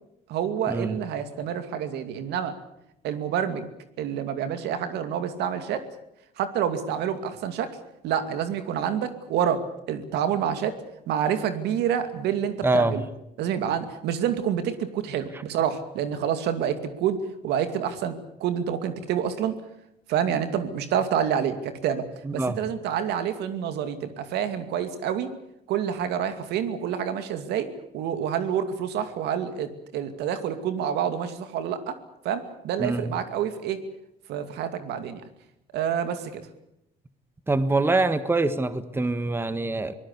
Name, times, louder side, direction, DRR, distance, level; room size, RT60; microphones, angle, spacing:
voice 1, 0.3-2.6 3.0-3.7 4.0-5.8 6.4-7.7 8.0-10.8 11.1-13.0 13.4-19.6 20.1-22.1 22.3-25.3 25.7-27.7 27.9-32.0 32.2-33.8 34.3-35.2 35.7-36.4, right 8 dB, 80° right, 9 dB, 2.5 m, -28 dB
voice 2, 12.6-13.0 22.2-22.6 32.8-33.1 37.5-40.0, right 2 dB, 15° right, 11 dB, 1.4 m, -24 dB
24.0 x 19.0 x 8.5 m, 0.80 s
cardioid pair, 110°, 17 cm